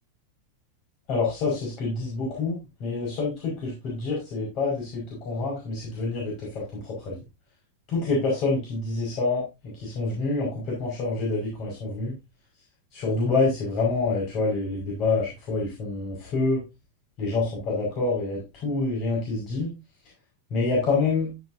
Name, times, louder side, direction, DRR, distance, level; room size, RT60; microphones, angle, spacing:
voice 1, 1.1-7.2 7.9-9.4 9.7-12.1 12.9-16.6 17.2-19.7 20.5-21.3, left 3 dB, 40° left, -3 dB, 5.5 m, -27 dB
15.0 x 7.1 x 2.7 m, 0.25 s
figure-of-eight pair, 90°, 0 cm